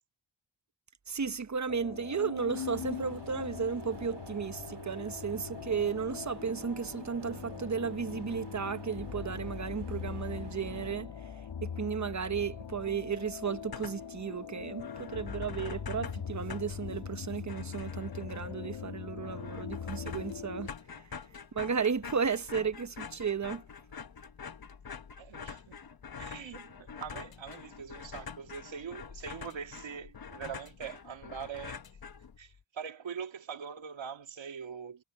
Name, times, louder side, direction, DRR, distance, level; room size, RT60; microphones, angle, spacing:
voice 1, 1.1-11.3 11.6-21.0 21.5-23.6, right 6 dB, 40° right, 1.1 m, -34 dB
sound 1, 1.7-20.7, left 7 dB, 85° left, 3.3 m, -41 dB
sound 2, 2.5-11.0, right 6 dB, 70° right, 3.4 m, -50 dB
sound 3, 13.5-14.2 14.5-14.6 14.8-32.6, left 6 dB, 55° left, 1.2 m, -46 dB
voice 2, 25.2-25.8 26.2-31.8 32.4-35.0, right 7 dB, 90° right, 2.1 m, -43 dB
cardioid pair, 70°, 44 cm